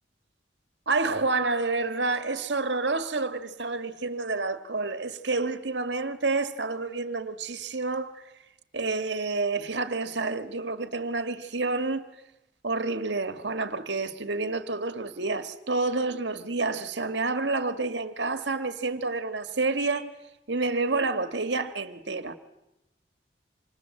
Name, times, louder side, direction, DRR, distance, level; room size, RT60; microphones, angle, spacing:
voice 1, 0.9-8.4 8.7-12.1 12.6-20.1 20.5-22.4, right 3 dB, 80° right, 1.7 m, -29 dB
27.5 x 27.0 x 7.8 m
head